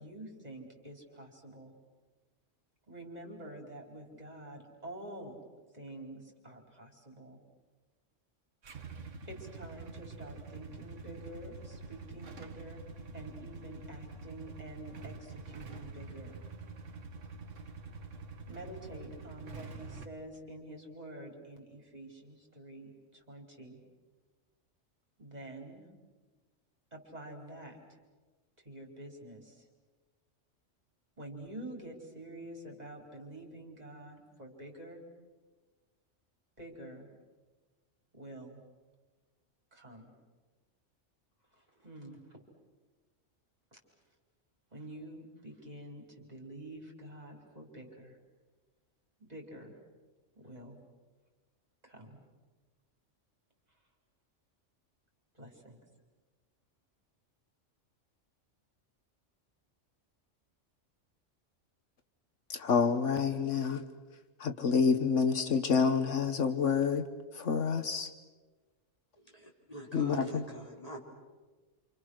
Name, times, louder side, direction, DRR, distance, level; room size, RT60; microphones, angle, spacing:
voice 1, 0.0-1.7 2.9-5.4 5.7-7.4 9.3-12.8 13.1-16.4 18.5-23.8 25.2-25.9 26.9-27.8 28.6-29.6 31.2-35.0 36.6-37.1 38.1-38.6 39.7-40.1 41.8-42.2 43.7-43.8 44.7-48.2 49.2-49.7 50.3-50.8 51.8-52.2 55.3-55.8, right 1 dB, 30° right, 0 dB, 4.7 m, -48 dB
Motorcycle / Engine starting / Idling, 8.6-20.1, right 3 dB, 75° right, 1.7 m, -46 dB
voice 2, 62.5-63.8 64.4-67.0 67.3-68.1 69.9-70.4, left 6 dB, 75° left, 9 dB, 1.4 m, -28 dB
voice 3, 69.2-71.0, equal, 30° left, -1 dB, 4.4 m, -46 dB
28.5 x 27.5 x 6.5 m, 1.3 s
omnidirectional pair, 1.3 m